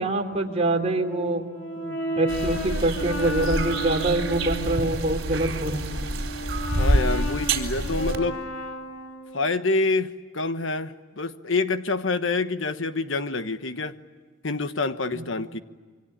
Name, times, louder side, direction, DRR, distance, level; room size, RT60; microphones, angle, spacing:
voice 1, 0.0-1.5 1.7-5.8 15.1-15.2, right 2 dB, 35° right, 2 dB, 3.3 m, -25 dB
Brass instrument, 1.0-5.0 5.5-9.6, equal, 90° left, 3.4 m, -33 dB
sound 1, 2.3-8.2, right 1 dB, 75° right, 3.7 m, -27 dB
voice 2, 6.8-8.4 9.3-13.9 14.4-15.6, left 3 dB, 70° left, 10 dB, 1.3 m, -27 dB
27.5 x 25.0 x 8.7 m, 1.5 s
head